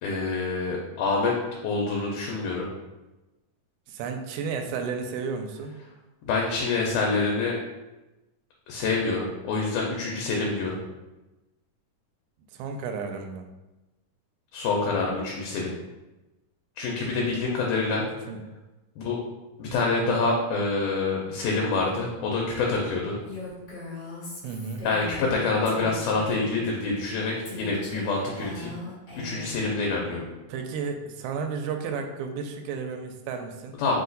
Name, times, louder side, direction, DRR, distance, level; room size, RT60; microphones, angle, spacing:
voice 1, 0.0-1.3 1.6-2.7 6.3-7.6 8.7-10.8 14.5-15.7 16.8-18.1 19.0-19.2 19.6-23.2 24.8-28.7 29.2-30.3 33.8-34.0, left 3 dB, 80° left, -1 dB, 2.1 m, -26 dB
voice 2, 3.9-5.8 12.5-13.5 18.3-18.4 24.4-24.9 30.5-33.7, right 5 dB, 80° right, 5 dB, 1.9 m, -32 dB
Female speech woman speaking, 23.3-26.6 27.4-29.7, left 2 dB, 40° left, 1.5 m, -39 dB
5.0 x 2.3 x 3.9 m, 1.1 s
omnidirectional pair, 3.6 m